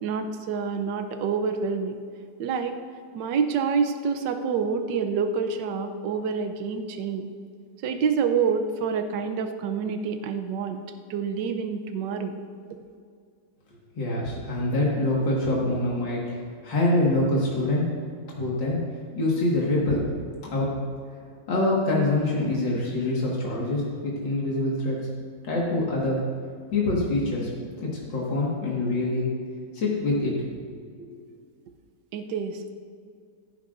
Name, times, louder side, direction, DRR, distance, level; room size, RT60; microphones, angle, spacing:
voice 1, 0.0-2.0 2.4-2.8 3.1-7.3 7.8-10.8 11.1-12.3 32.1-32.7, right 6 dB, 80° right, 7 dB, 1.4 m, -27 dB
voice 2, 14.0-16.4 16.6-17.9 18.3-18.8 19.2-20.0 20.5-20.7 21.5-25.0 25.4-26.2 26.7-27.5 27.8-29.3 29.7-30.3 31.0-31.1, left 2 dB, 90° left, -5 dB, 2.5 m, -25 dB
16.5 x 10.0 x 2.6 m, 2.2 s
omnidirectional pair, 1.9 m